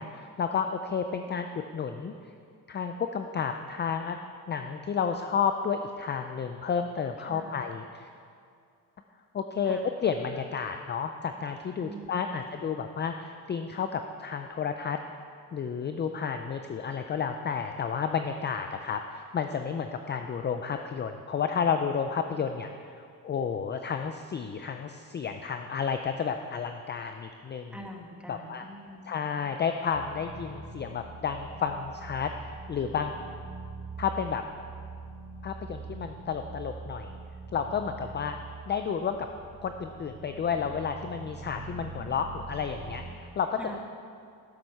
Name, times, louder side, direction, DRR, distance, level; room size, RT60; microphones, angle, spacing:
voice 1, 0.0-2.1 2.7-4.2 4.5-8.1 9.3-15.0 15.5-27.7 28.3-28.6 29.1-33.1 34.0-34.4 35.4-37.1 37.5-38.4 38.7-39.2 39.6-43.5, left 6 dB, 30° left, 7 dB, 0.5 m, -31 dB
voice 2, 7.2-7.6 9.6-9.9 11.7-12.6 22.3-22.5 27.7-29.4 43.6-43.8, right 1 dB, 5° right, 1 dB, 1.5 m, -45 dB
sound 1, 29.9-43.1, right 4 dB, 55° right, 2.5 m, -43 dB
12.5 x 7.6 x 5.5 m, 2.3 s
cardioid pair, 105°, 37 cm